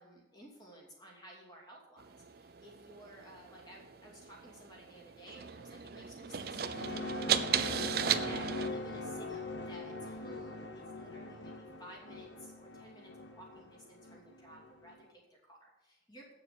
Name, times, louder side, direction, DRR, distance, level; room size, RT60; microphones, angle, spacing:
voice 1, 0.0-7.4 7.8-16.3, equal, 20° left, -2 dB, 2.8 m, -54 dB
sound 1, 2.0-8.7, right 8 dB, 55° right, 0.6 m, -36 dB
sound 2, 6.3-15.0, left 2 dB, 75° left, 1.3 m, -42 dB
8.8 x 7.1 x 7.0 m, 0.98 s
head